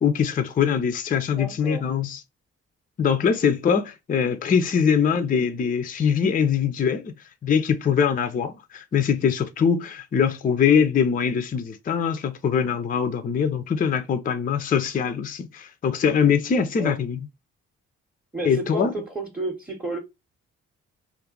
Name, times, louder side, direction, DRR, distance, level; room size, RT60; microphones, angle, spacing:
voice 1, 0.0-2.2 3.0-7.1 7.4-17.2 18.4-18.9, left 7 dB, 25° left, 0.4 m, -22 dB
voice 2, 1.3-1.8 16.8-17.0 18.3-20.0, right 2 dB, 5° right, 0.8 m, -31 dB
2.4 x 2.2 x 3.7 m
hypercardioid pair, 40°, 36 cm